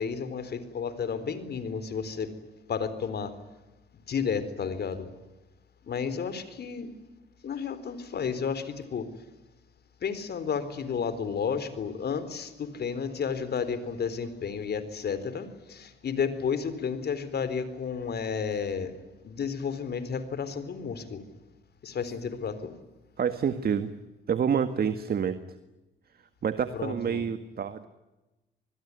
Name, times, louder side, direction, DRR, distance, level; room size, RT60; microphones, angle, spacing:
voice 1, 0.0-2.3 2.7-3.3 4.1-5.1 5.8-6.9 7.4-9.1 10.0-18.9 19.2-21.3 21.8-22.7 26.7-27.3, left 6 dB, 55° left, 14 dB, 4.0 m, -32 dB
voice 2, 23.2-23.9 24.3-25.4 26.4-27.9, right 7 dB, 50° right, 10 dB, 1.7 m, -28 dB
26.5 x 21.0 x 9.8 m, 1.1 s
cardioid pair, 90°, 20 cm